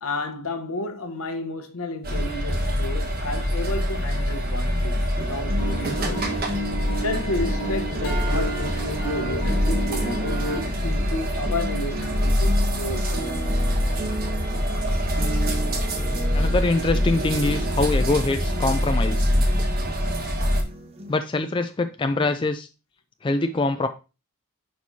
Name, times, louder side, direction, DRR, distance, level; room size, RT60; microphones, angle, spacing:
voice 1, 0.0-6.4 7.0-13.4, left 2 dB, 70° left, 1.1 m, -32 dB
sound 1, 2.0-20.6, equal, 45° right, 1.5 m, -25 dB
sound 2, 5.2-21.2, equal, 25° right, 0.9 m, -36 dB
sound 3, 5.6-10.6, right 2 dB, 55° left, 4.0 m, -31 dB
voice 2, 16.3-19.3 21.1-22.7 23.2-23.9, left 2 dB, 20° left, 0.4 m, -24 dB
10.5 x 4.4 x 2.8 m
head